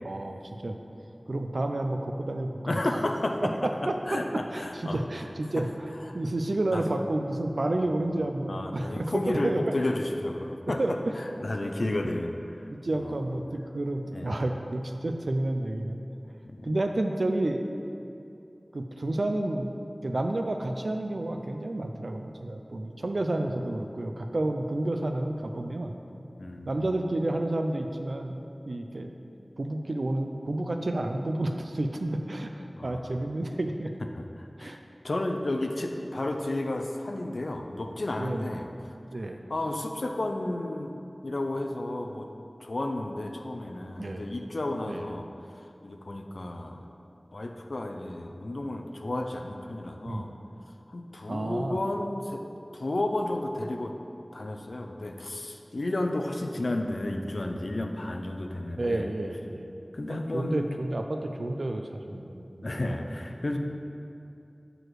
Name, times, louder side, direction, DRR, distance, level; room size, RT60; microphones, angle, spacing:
voice 1, 0.0-0.8 1.3-3.1 3.4-3.9 4.5-5.9 6.1-9.6 10.8-11.1 12.0-12.1 12.7-16.0 16.6-17.6 18.7-19.7 20.0-25.9 26.7-29.1 29.6-33.9 34.6-34.8 38.2-38.5 39.1-39.4 44.0-44.3 44.9-45.0 50.1-50.3 51.3-51.8 58.8-59.7 60.1-63.0, right 1 dB, 80° right, 5 dB, 0.4 m, -30 dB
voice 2, 2.7-5.0 5.6-5.7 6.7-6.8 8.5-12.3 13.0-13.2 14.1-14.3 16.4-16.7 26.4-26.8 32.8-33.0 34.1-34.8 35.0-38.7 39.5-41.0 41.2-42.3 42.6-45.3 45.8-46.9 47.3-50.3 50.9-52.5 52.7-53.9 54.3-59.1 59.9-60.6 62.6-63.6, left 1 dB, 85° left, 4 dB, 0.4 m, -32 dB
6.2 x 4.8 x 4.7 m, 2.7 s
wide cardioid pair, 50°, 0 cm